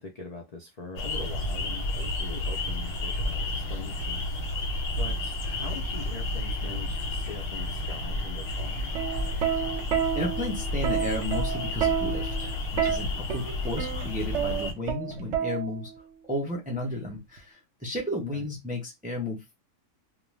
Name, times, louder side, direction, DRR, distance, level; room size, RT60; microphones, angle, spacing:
voice 1, 0.0-4.6 5.0-8.9 18.3-18.4, left 4 dB, 60° left, 0.4 m, -42 dB
sound 1, 1.0-14.7, left 1 dB, 75° left, 1.2 m, -31 dB
Plucked string instrument, 8.7-16.0 17.1-17.4, right 8 dB, 65° right, 0.8 m, -30 dB
voice 2, 10.1-15.9 16.3-19.5, left 1 dB, 10° right, 0.4 m, -33 dB
2.4 x 2.2 x 3.1 m
omnidirectional pair, 1.5 m